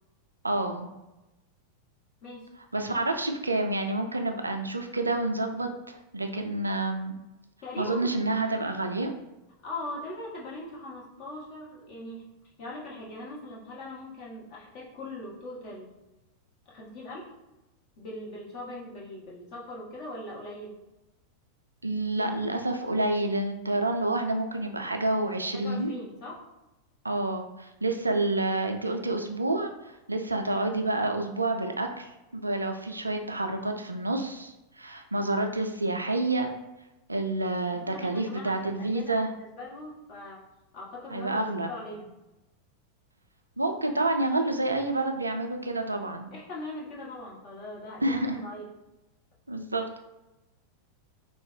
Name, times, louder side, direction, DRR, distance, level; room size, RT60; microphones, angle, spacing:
voice 1, 0.4-0.9 2.7-7.2 7.8-9.1 21.8-25.9 27.0-36.5 37.1-39.3 41.1-41.7 43.6-46.3 48.0-48.4 49.5-50.0, right 2 dB, 80° right, 5 dB, 0.3 m, -29 dB
voice 2, 7.6-8.1 9.6-12.3 12.6-15.9 16.7-17.3 18.0-20.8 25.5-26.4 37.7-40.4 40.7-42.1 45.8-45.9 46.3-48.7, left 1 dB, 40° left, -4 dB, 1.0 m, -41 dB
3.4 x 2.0 x 3.2 m, 0.99 s
figure-of-eight pair, 90°, 0 cm